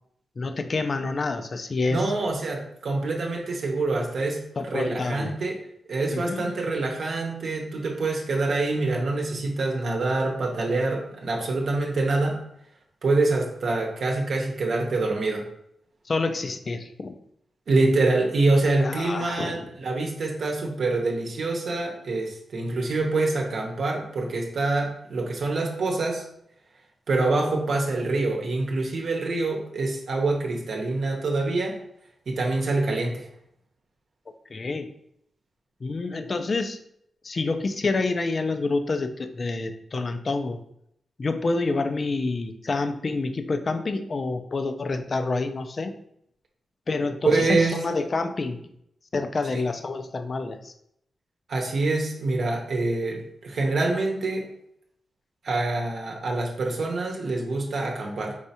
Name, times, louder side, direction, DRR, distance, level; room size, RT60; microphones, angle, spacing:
voice 1, 0.4-2.1 4.6-5.4 6.1-6.6 16.1-17.2 18.8-19.7 34.5-34.9 35.8-36.8 37.2-40.6 41.2-46.0 46.9-48.6 49.1-50.7, left 3 dB, 40° left, 8 dB, 0.4 m, -28 dB
voice 2, 1.9-4.4 4.7-5.6 5.9-12.4 13.0-15.5 17.7-26.2 27.1-31.8 32.3-33.3 47.2-47.8 49.5-49.6 51.5-54.5 55.4-58.4, right 3 dB, 65° right, 0 dB, 0.8 m, -25 dB
4.8 x 3.2 x 2.8 m, 0.73 s
cardioid pair, 100°, 0 cm